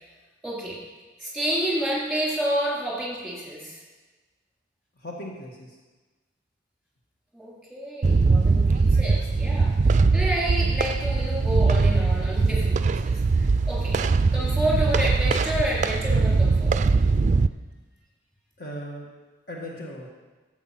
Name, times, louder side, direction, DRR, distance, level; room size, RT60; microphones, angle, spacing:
voice 1, 0.4-0.8 1.2-3.8 7.3-14.0 14.3-16.8, right 1 dB, ahead, -6 dB, 3.9 m, -29 dB
voice 2, 5.0-5.8 18.6-19.1 19.5-20.1, equal, 55° left, -2 dB, 1.7 m, -37 dB
sound 1, 8.0-17.5, right 4 dB, 40° right, 0.4 m, -21 dB
13.0 x 8.1 x 5.9 m, 1.3 s
head